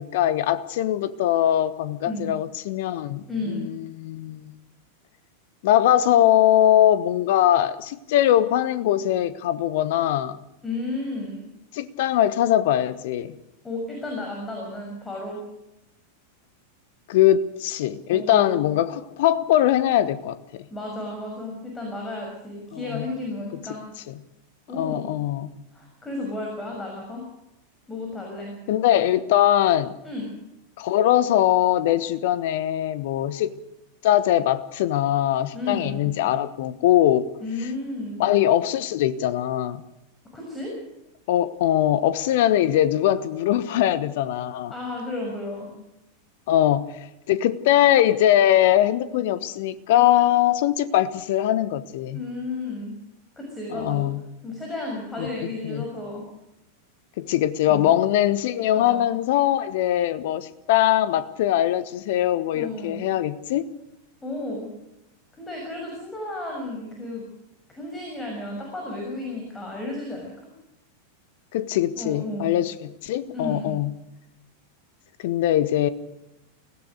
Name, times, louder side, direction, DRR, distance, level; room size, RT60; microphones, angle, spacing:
voice 1, 0.0-4.5 5.6-10.4 11.7-13.3 17.1-20.6 22.7-23.1 24.7-25.5 28.7-29.9 30.8-33.5 34.0-37.3 38.2-39.8 41.3-44.7 46.5-52.2 53.7-54.2 55.2-55.8 57.2-63.7 71.5-73.9 75.2-75.9, left 12 dB, 50° left, 1.2 m, -21 dB
voice 2, 3.3-3.7 10.6-11.5 13.6-15.4 18.1-18.6 20.7-23.8 24.7-25.1 25.7-27.2 27.9-28.6 30.0-30.3 35.5-36.1 37.4-38.2 40.3-40.7 44.7-45.7 52.1-52.9 53.4-54.1 54.4-56.2 57.6-57.9 58.7-59.0 62.5-63.0 64.2-64.7 65.3-67.3 67.7-70.3 72.0-72.6 73.3-73.8, left 2 dB, 10° left, 6.3 m, -33 dB
24.5 x 17.0 x 6.6 m
figure-of-eight pair, 90°, 0 cm